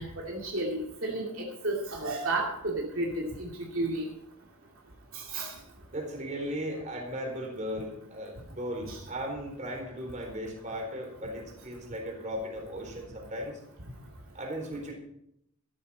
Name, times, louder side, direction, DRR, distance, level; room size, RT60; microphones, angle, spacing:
voice 1, 0.0-4.0 5.1-5.5 8.9-9.0, right 2 dB, 65° right, -2 dB, 2.7 m, -32 dB
voice 2, 5.9-13.6 14.3-14.9, equal, 35° right, 1 dB, 4.2 m, -37 dB
14.0 x 13.5 x 4.3 m, 0.76 s
head